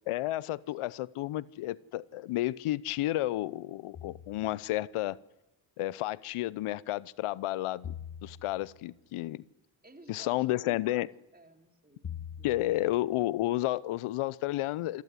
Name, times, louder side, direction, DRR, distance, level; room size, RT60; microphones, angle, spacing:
voice 1, 0.1-5.2 5.8-7.9 8.2-9.4 10.1-11.1 12.4-15.0, left 16 dB, 80° left, 0.7 m, -31 dB
sound 1, 3.9-4.7 7.8-8.9 12.0-13.0, left 8 dB, 40° left, 1.1 m, -43 dB
voice 2, 9.8-11.0 11.3-12.7, right 2 dB, 20° right, 3.3 m, -54 dB
27.0 x 14.0 x 9.5 m
supercardioid pair, 45°, 50 cm